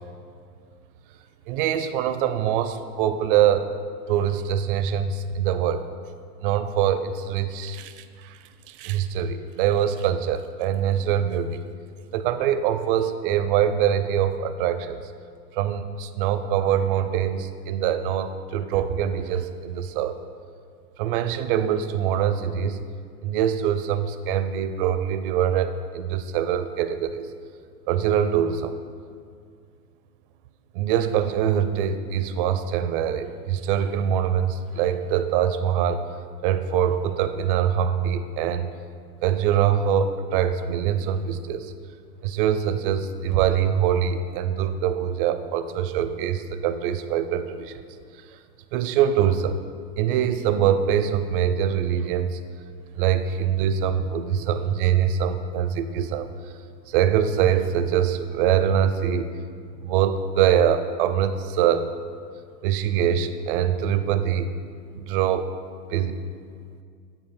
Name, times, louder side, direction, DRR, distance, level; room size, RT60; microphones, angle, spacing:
voice 1, 1.5-3.7 4.1-5.8 6.4-8.4 8.7-11.6 12.1-15.0 15.5-20.2 21.0-22.8 23.2-27.3 27.9-28.7 30.7-36.0 36.4-38.7 39.2-41.7 42.2-47.8 48.7-49.6 50.0-52.4 53.0-56.3 56.9-59.3 59.8-61.9 62.6-64.5 64.9-65.5 65.9-66.2, right 9 dB, 35° right, 11 dB, 0.4 m, -23 dB
7.8 x 4.2 x 6.0 m, 2.2 s
hypercardioid pair, 115°, 48 cm